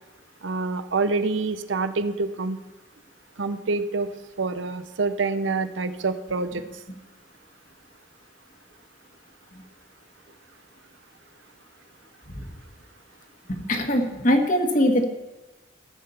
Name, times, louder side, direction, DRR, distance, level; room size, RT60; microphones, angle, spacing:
voice 1, 0.4-2.6 3.4-4.1 4.4-6.6, right 3 dB, 90° right, 11 dB, 0.7 m, -26 dB
voice 2, 13.7-15.0, left 1 dB, 45° left, 4 dB, 1.5 m, -21 dB
15.0 x 5.7 x 7.0 m, 1.1 s
head